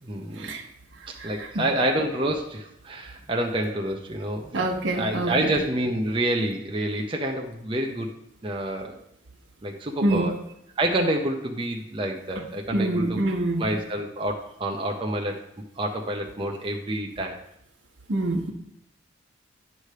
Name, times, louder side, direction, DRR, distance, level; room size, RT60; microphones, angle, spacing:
voice 1, 0.0-0.6 1.1-4.7 4.9-8.1 8.4-9.0 9.6-10.4 10.8-13.2 13.6-15.4 15.8-17.4, right 1 dB, 25° right, 1 dB, 0.6 m, -28 dB
voice 2, 1.2-1.6 4.5-5.5 10.0-10.3 12.7-13.7 18.1-18.5, right 2 dB, 75° right, 1 dB, 1.2 m, -26 dB
9.5 x 3.3 x 6.6 m, 0.78 s
head